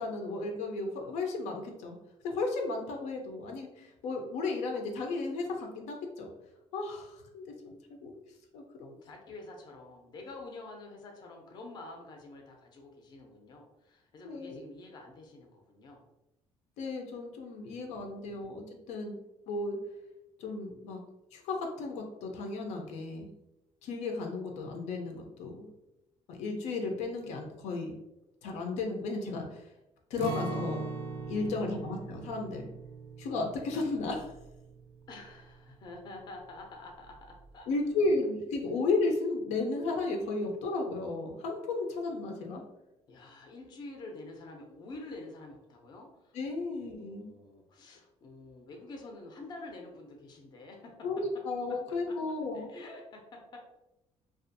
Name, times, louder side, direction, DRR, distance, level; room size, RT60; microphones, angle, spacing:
voice 1, 0.0-2.0 2.2-6.3 6.7-8.1 8.5-9.0 14.2-14.6 16.8-19.2 19.5-19.8 20.4-21.0 21.3-23.3 23.8-25.7 26.3-27.9 28.4-29.6 30.1-30.8 31.3-32.6 33.2-34.3 37.7-42.6 46.3-47.3 51.0-52.7, left 3 dB, 90° left, 2 dB, 0.5 m, -34 dB
voice 2, 9.0-16.0 17.6-18.4 31.4-31.7 35.1-37.7 43.1-50.9 51.9-52.1 52.4-53.6, left 2 dB, 35° left, 2 dB, 0.5 m, -48 dB
Acoustic guitar, 30.2-36.1 36.4-36.6 37.0-37.5, right 4 dB, 65° right, 0.5 m, -41 dB
2.5 x 2.3 x 2.5 m, 0.90 s
cardioid pair, 165°, 12 cm